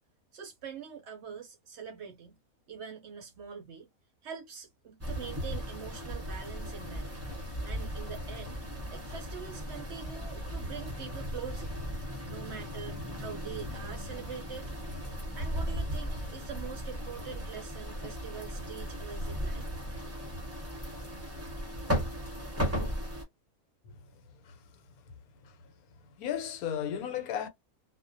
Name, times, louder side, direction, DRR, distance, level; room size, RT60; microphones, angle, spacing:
voice 1, 0.3-2.4 2.7-3.9 4.2-7.1 7.6-8.6 8.9-11.8 12.3-14.7 15.4-19.7, right 7 dB, 65° right, 0.7 m, -44 dB
sound 1, 5.0-23.2, equal, 15° right, 0.5 m, -36 dB
voice 2, 26.2-27.5, left 9 dB, 85° left, 1.1 m, -34 dB
2.3 x 2.1 x 2.5 m
omnidirectional pair, 1.5 m